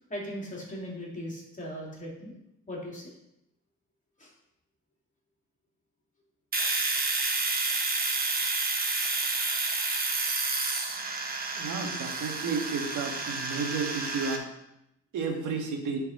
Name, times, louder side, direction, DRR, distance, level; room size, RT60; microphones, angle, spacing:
voice 1, 0.1-2.3 2.7-3.1 4.2-4.3, equal, 25° left, -3 dB, 2.8 m, -38 dB
Domestic sounds home sounds, 6.5-14.4, right 3 dB, 30° right, 1.2 m, -30 dB
voice 2, 11.6-14.4 15.1-16.0, right 5 dB, 80° right, 2 dB, 1.5 m, -32 dB
10.0 x 4.6 x 4.2 m, 0.84 s
cardioid pair, 90°, 30 cm